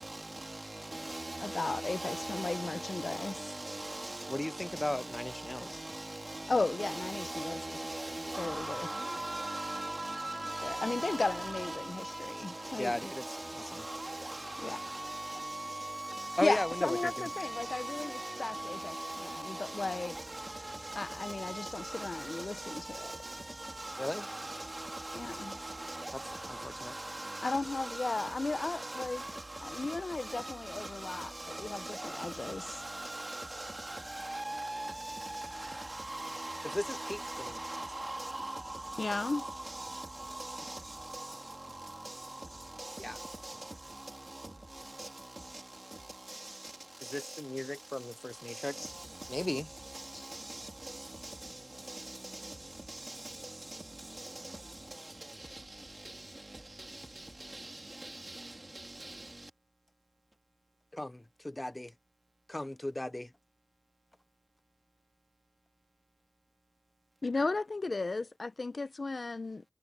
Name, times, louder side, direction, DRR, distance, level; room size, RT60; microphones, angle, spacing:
voice 1, 0.0-59.5, right 1 dB, 40° right, 3.5 m, -41 dB
voice 2, 1.4-3.3 6.5-7.6 8.4-8.9 10.6-13.0 14.6-14.8 16.4-20.2 21.0-23.1 25.1-25.6 27.4-29.2 29.6-32.6 39.0-39.4 67.2-69.6, left 3 dB, 70° left, 0.8 m, -35 dB
voice 3, 4.3-5.8 12.8-13.2 13.5-13.8 16.4-17.3 24.0-24.3 26.5-26.9 36.7-37.6 43.0-43.2 47.0-48.9 49.3-49.7 50.1-50.2 60.9-61.9 62.5-63.3, left 1 dB, 30° left, 0.6 m, -36 dB
wide cardioid pair, 45°, 0 cm